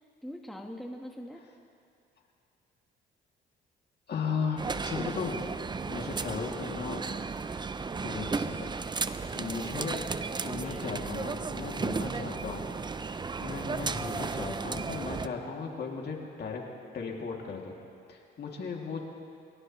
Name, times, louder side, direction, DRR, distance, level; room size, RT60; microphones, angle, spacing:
voice 1, 0.2-1.5 5.9-6.1 10.6-11.4, equal, ahead, 2 dB, 1.3 m, -43 dB
voice 2, 4.1-5.4 5.9-7.0 8.0-8.7 9.3-10.0 10.4-12.7 13.4-16.6 16.9-17.8 18.1-19.0, left 5 dB, 55° left, 0 dB, 2.6 m, -36 dB
sound 1, 4.6-15.3, right 4 dB, 20° right, 0.5 m, -34 dB
26.0 x 17.5 x 3.1 m, 2.4 s
cardioid pair, 90°, 20 cm